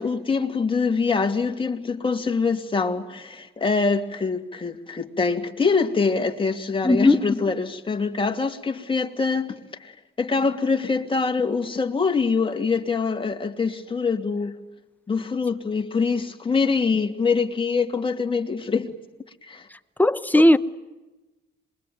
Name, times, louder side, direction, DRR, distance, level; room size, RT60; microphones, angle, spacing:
voice 1, 0.0-14.6 15.1-18.9 19.4-19.7 20.3-20.4, left 4 dB, 25° left, 2.8 m, -24 dB
voice 2, 6.8-7.2 20.0-20.6, left 1 dB, 10° left, 1.1 m, -16 dB
27.0 x 23.0 x 9.4 m
cardioid pair, 90°, 20 cm